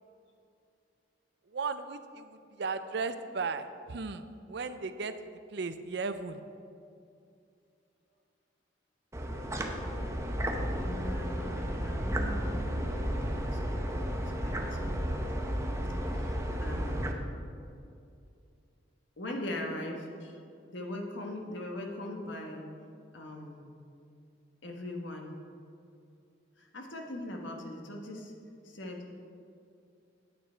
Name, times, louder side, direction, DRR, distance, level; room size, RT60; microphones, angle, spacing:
voice 1, 1.5-5.1 5.5-6.4, right 4 dB, 60° right, 10 dB, 0.5 m, -36 dB
sound 1, 9.1-17.1, equal, 15° right, 0.7 m, -33 dB
voice 2, 10.6-13.9 14.2-14.6 16.1-17.1 19.2-20.4 20.7-22.6 23.1-23.7 24.6-25.3 26.6-28.3 28.6-29.0, left 1 dB, 75° left, 1 dB, 1.3 m, -40 dB
9.2 x 8.6 x 4.5 m, 2.5 s
head